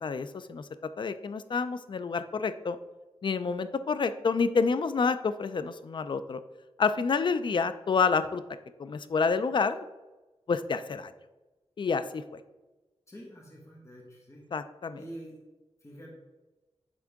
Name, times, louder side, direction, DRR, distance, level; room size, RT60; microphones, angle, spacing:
voice 1, 0.0-0.7 1.0-2.8 3.2-6.4 6.8-8.4 8.8-9.9 10.5-11.1 11.8-12.4 14.5-15.0, left 5 dB, 45° left, 12 dB, 0.4 m, -28 dB
voice 2, 13.1-14.4 14.9-15.4 15.8-16.2, right 1 dB, 25° left, -3 dB, 1.5 m, -46 dB
9.7 x 3.7 x 3.5 m, 1.2 s
wide cardioid pair, 100°, 11 cm